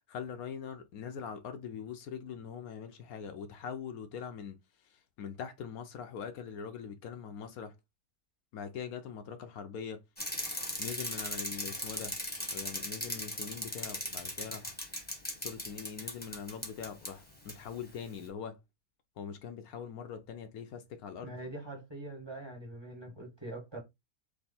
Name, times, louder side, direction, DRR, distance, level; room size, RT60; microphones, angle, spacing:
voice 1, 0.1-4.6 4.9-7.7 8.5-10.0 10.8-12.2 12.5-14.7 15.4-18.6 19.2-21.4, left 7 dB, 75° left, 1.1 m, -42 dB
Bicycle, 10.2-17.1 17.5-17.6, left 1 dB, 5° left, 1.2 m, -38 dB
voice 2, 21.2-23.8, right 2 dB, 20° right, 1.6 m, -43 dB
3.5 x 3.2 x 4.1 m
omnidirectional pair, 1.6 m